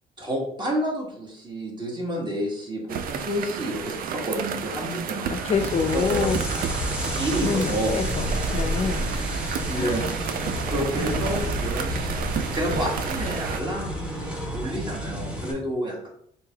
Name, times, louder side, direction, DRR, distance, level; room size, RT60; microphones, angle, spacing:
voice 1, 0.2-5.6 5.9-6.3 7.2-8.0 9.4-10.0 10.6-16.1, equal, 25° right, -2 dB, 1.4 m, -30 dB
sound 1, 2.9-13.6, right 7 dB, 60° right, 0.5 m, -32 dB
voice 2, 5.3-6.4 7.4-9.1 9.7-10.1, left 5 dB, 40° left, 8 dB, 0.5 m, -27 dB
sound 2, 5.5-15.5, equal, 5° right, 1.0 m, -30 dB
3.7 x 2.8 x 4.5 m, 0.68 s
cardioid pair, 110°, 17 cm